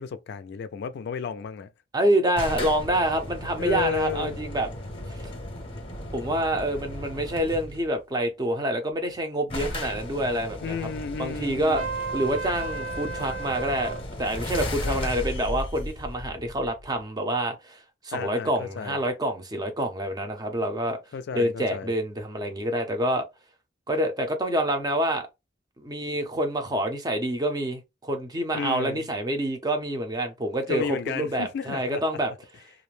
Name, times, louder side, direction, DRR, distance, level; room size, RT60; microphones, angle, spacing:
voice 1, 0.0-1.7 3.6-4.4 10.6-11.9 14.8-15.3 18.1-19.0 21.1-21.9 28.5-29.1 30.7-32.0, left 6 dB, 60° left, 0.3 m, -33 dB
voice 2, 1.9-4.7 6.1-10.8 11.2-11.8 12.1-21.0 21.3-23.3 23.9-25.3 25.8-32.3, right 1 dB, 20° right, 0.5 m, -27 dB
sound 1, 2.4-7.9 8.9-9.0 9.1-9.2 9.5-17.0, left 1 dB, 30° left, 0.7 m, -35 dB
Trumpet, 11.8-14.0, right 4 dB, 90° right, 0.9 m, -33 dB
2.4 x 2.1 x 3.1 m
head